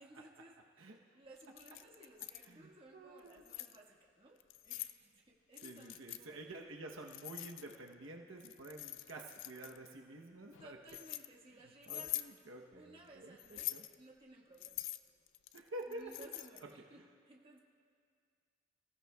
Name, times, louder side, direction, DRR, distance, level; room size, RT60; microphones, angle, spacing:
voice 1, 0.0-4.4 4.6-6.7 10.6-12.1 12.7-14.8 15.9-17.0 17.2-17.6, right 1 dB, 25° right, -2 dB, 1.5 m, -59 dB
Keys jangling, 1.4-2.5 3.2-3.8 4.4-5.0 5.5-6.2 7.1-7.9 8.4-9.9 10.5-11.3 11.8-12.3 13.4-14.0 14.6-16.7, left 16 dB, 65° left, 0.4 m, -44 dB
voice 2, 2.5-3.4 5.6-10.8 11.9-13.9 15.5-16.3 16.7-16.8, right 2 dB, 75° right, 1 dB, 0.9 m, -49 dB
26.5 x 15.0 x 2.3 m, 2.2 s
head